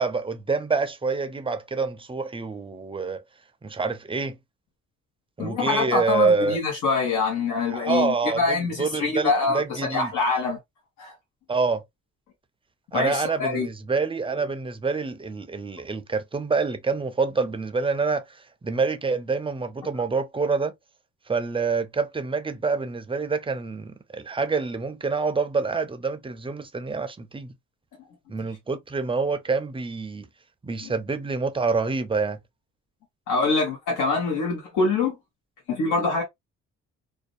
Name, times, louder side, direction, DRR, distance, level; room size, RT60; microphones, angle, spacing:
voice 1, 0.0-3.2 3.6-4.4 5.4-6.6 7.7-10.1 11.5-11.8 12.9-18.2 18.6-20.7 21.3-27.5 28.3-30.3 30.6-32.4, right 4 dB, 20° right, 0.4 m, -26 dB
voice 2, 5.4-10.6 11.0-11.1 12.9-13.7 30.8-30.9 33.3-35.1 35.7-36.2, left 3 dB, 85° left, 1.1 m, -25 dB
2.6 x 2.1 x 2.4 m
cardioid pair, 90°, 30 cm